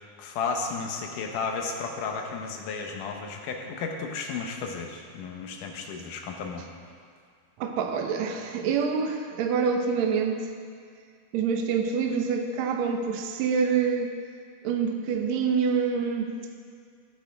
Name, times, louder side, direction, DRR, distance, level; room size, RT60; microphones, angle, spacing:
voice 1, 0.2-6.7, left 5 dB, 70° left, 2 dB, 2.3 m, -33 dB
voice 2, 7.6-10.5 11.3-14.2 14.6-16.4, right 6 dB, 85° right, 4 dB, 1.5 m, -26 dB
16.0 x 8.5 x 3.4 m, 2.1 s
omnidirectional pair, 4.1 m